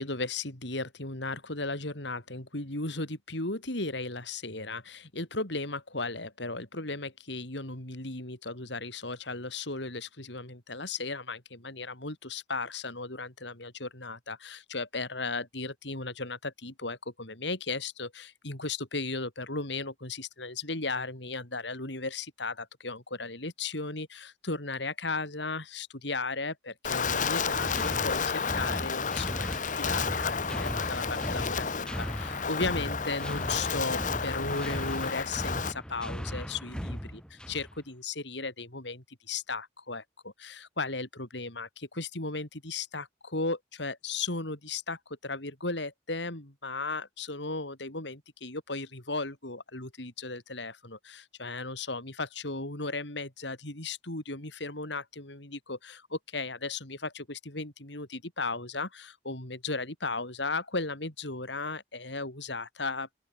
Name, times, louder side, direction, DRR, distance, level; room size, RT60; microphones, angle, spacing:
voice 1, 0.0-37.0 37.5-63.1, left 3 dB, 70° left, 4.5 m, -36 dB
Wind, 26.8-35.7, left 6 dB, 45° left, 1.0 m, -32 dB
sound 1, 27.0-37.8, equal, 5° left, 4.4 m, -37 dB
open air
head